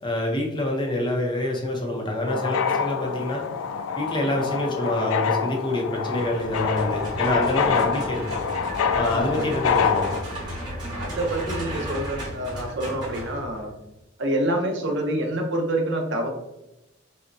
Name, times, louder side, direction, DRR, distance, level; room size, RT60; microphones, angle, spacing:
voice 1, 0.0-3.4 4.0-8.2 8.9-10.1, left 1 dB, 25° left, 0 dB, 0.6 m, -26 dB
sound 1, 2.3-10.2, left 6 dB, 80° left, 0.3 m, -26 dB
sound 2, 6.2-13.8, equal, 20° right, 1.2 m, -34 dB
voice 2, 9.1-9.6 11.0-13.7 14.2-16.3, right 1 dB, 60° right, 1 dB, 0.7 m, -27 dB
5.3 x 2.1 x 2.6 m, 0.93 s
head